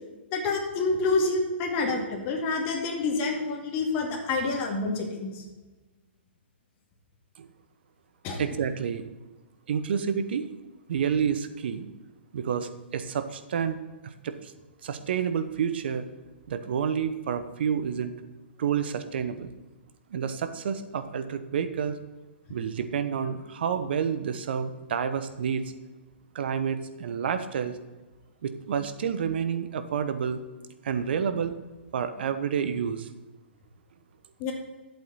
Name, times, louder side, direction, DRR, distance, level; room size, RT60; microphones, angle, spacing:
voice 1, 0.3-5.4 8.2-8.4 34.4-34.5, left 3 dB, 35° left, 0 dB, 2.3 m, -28 dB
voice 2, 8.4-9.1 9.7-10.5 10.9-11.9 12.3-14.5 14.8-16.1 16.5-18.1 18.6-19.5 20.1-22.0 22.5-25.7 26.3-27.8 28.4-30.4 30.8-31.5 31.9-33.1, right 7 dB, 60° right, 11 dB, 0.9 m, -29 dB
11.5 x 8.0 x 4.1 m, 1.2 s
hypercardioid pair, 125°, 6 cm